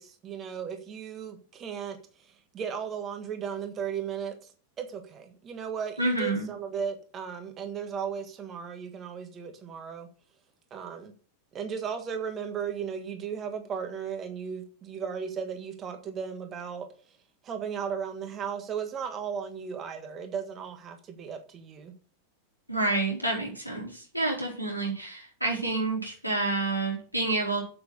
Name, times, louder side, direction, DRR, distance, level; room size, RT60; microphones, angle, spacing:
voice 1, 0.0-10.1 10.7-11.1 11.5-17.2 17.4-21.9, right 7 dB, 25° right, 1.6 m, -36 dB
voice 2, 6.0-6.5 22.7-27.6, right 2 dB, 90° right, 4.5 m, -29 dB
8.1 x 7.7 x 6.7 m
figure-of-eight pair, 90°, 0 cm